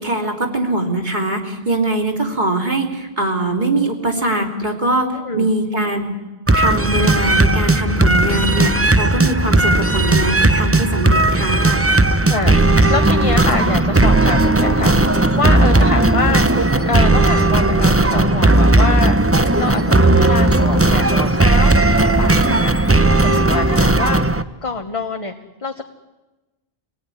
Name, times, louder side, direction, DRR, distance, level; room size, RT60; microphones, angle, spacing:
voice 1, 0.0-6.2 6.5-11.8, right 1 dB, 50° right, 3 dB, 3.3 m, -22 dB
voice 2, 5.1-5.5 12.3-25.3 25.6-25.8, left 4 dB, 35° left, 5 dB, 1.3 m, -25 dB
sound 1, 6.5-24.4, right 2 dB, 15° right, 0.8 m, -15 dB
26.0 x 18.0 x 9.8 m, 1.1 s
omnidirectional pair, 1.0 m